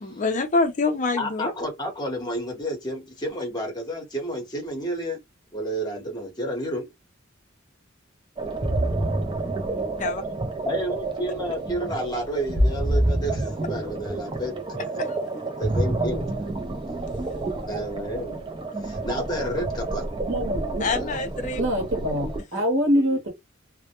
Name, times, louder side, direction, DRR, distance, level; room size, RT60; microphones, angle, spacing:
voice 1, 0.0-1.5 10.0-10.2 15.0-15.1 20.8-21.6 22.5-22.6, left 3 dB, 40° left, 0.5 m, -25 dB
voice 2, 1.1-5.2 5.5-6.9 10.6-15.0 15.6-16.5 17.7-18.4 18.8-20.0 20.9-21.2, equal, 20° left, 0.9 m, -31 dB
sound 1, 8.4-22.4, right 2 dB, 25° right, 0.4 m, -28 dB
voice 3, 20.3-21.1 21.6-23.3, equal, 65° right, 0.9 m, -25 dB
2.1 x 2.1 x 2.8 m
head